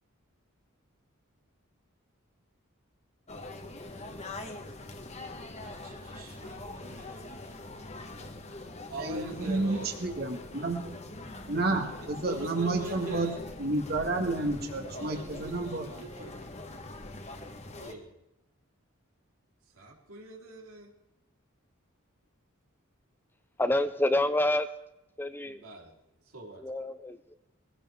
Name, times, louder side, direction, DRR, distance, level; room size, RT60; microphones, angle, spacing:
sound 1, 3.3-17.9, left 2 dB, 30° left, 1.3 m, -43 dB
voice 1, 5.6-7.4 8.9-9.9 12.2-13.4 14.9-16.4 17.8-18.1 19.7-20.9 25.4-26.0 26.3-26.6, right 2 dB, 90° right, -1 dB, 3.8 m, -42 dB
voice 2, 9.0-11.0 11.5-13.3 13.6-15.9, right 2 dB, 45° right, 3 dB, 1.7 m, -30 dB
voice 3, 23.6-24.7 25.2-25.6 26.6-27.3, left 1 dB, 10° left, 11 dB, 0.5 m, -28 dB
21.0 x 16.0 x 3.6 m, 0.88 s
head